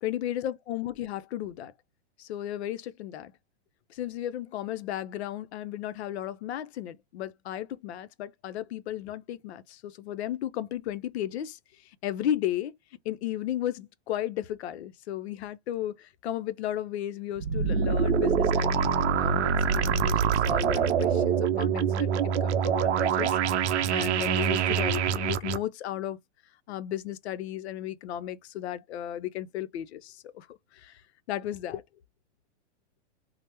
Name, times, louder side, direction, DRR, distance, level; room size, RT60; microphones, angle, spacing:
voice 1, 0.0-1.7 2.2-3.3 3.9-12.7 13.0-26.2 26.7-30.5 30.7-31.0 31.3-31.8, left 12 dB, 65° left, 0.5 m, -34 dB
sound 1, 17.4-25.6, right 7 dB, 70° right, 0.5 m, -25 dB
2.9 x 2.0 x 3.3 m
hypercardioid pair, 155°, 35 cm